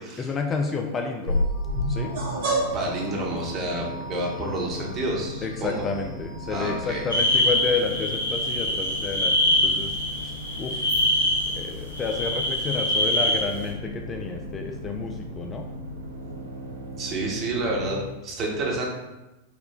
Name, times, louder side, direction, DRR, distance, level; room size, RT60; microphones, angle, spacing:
voice 1, 0.2-1.5 1.9-2.1 5.4-9.9 10.2-10.3 10.6-10.9 11.5-15.6, left 4 dB, 25° left, 3 dB, 0.3 m, -30 dB
sound 1, 1.3-7.4, equal, 55° right, 1.0 m, -31 dB
sound 2, 1.7-17.8, left 1 dB, 80° right, 0.6 m, -38 dB
voice 2, 2.7-5.8 6.5-7.0 17.0-18.9, right 2 dB, 30° right, -1 dB, 1.0 m, -29 dB
sound 3, 7.1-13.7, left 1 dB, 80° left, 1.1 m, -24 dB
4.4 x 2.1 x 3.7 m, 1.0 s
figure-of-eight pair, 90°, 0 cm